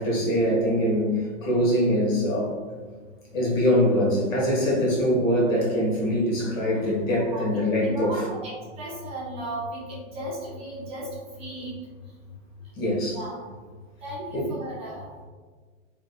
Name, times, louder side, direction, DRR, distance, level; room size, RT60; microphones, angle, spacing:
voice 1, 0.0-2.6 3.3-8.3 12.8-13.2 14.3-14.5, equal, 80° left, -3 dB, 1.4 m, -23 dB
voice 2, 7.2-11.1 11.4-11.8 13.1-13.3 14.0-15.0, right 1 dB, 15° right, -7 dB, 0.6 m, -35 dB
3.5 x 2.9 x 2.2 m, 1.4 s
hypercardioid pair, 145°, 39 cm